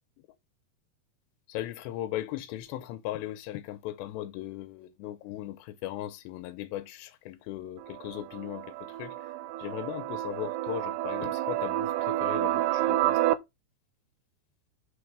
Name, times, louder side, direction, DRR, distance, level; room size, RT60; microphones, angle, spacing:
voice 1, 1.5-13.2, left 13 dB, 85° left, 2.8 m, -38 dB
sound 1, 7.8-13.4, right 14 dB, 80° right, 2.4 m, -29 dB
8.2 x 4.3 x 3.4 m
omnidirectional pair, 5.0 m